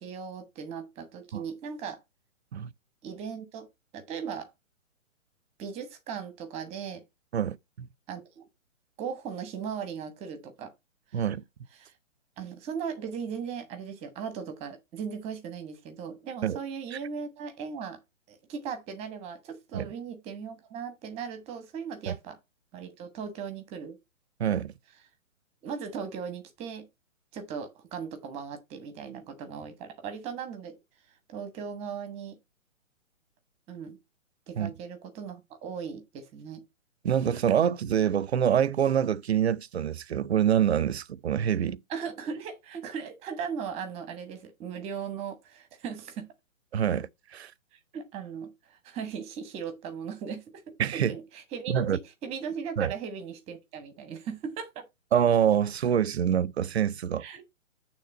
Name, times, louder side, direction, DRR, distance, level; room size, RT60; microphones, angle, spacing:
voice 1, 0.0-2.0 3.0-3.7 3.9-4.5 5.6-7.0 8.1-8.5 9.0-10.7 11.1-11.2 11.8-11.9 12.4-18.0 18.3-22.4 22.7-24.0 25.6-26.9 27.3-30.8 31.3-32.4 33.7-34.0 34.5-36.6 41.9-46.3 47.9-54.9 57.2-57.4, right 6 dB, 15° right, 1.2 m, -38 dB
voice 2, 7.3-7.9 11.1-11.4 16.4-16.6 19.7-19.9 22.1-22.2 24.4-24.7 34.6-34.7 37.0-41.8 46.7-47.5 50.8-51.1 51.7-52.0 52.8-52.9 55.1-57.2, right 9 dB, 55° right, 0.6 m, -26 dB
8.9 x 3.5 x 5.4 m
figure-of-eight pair, 130°, 39 cm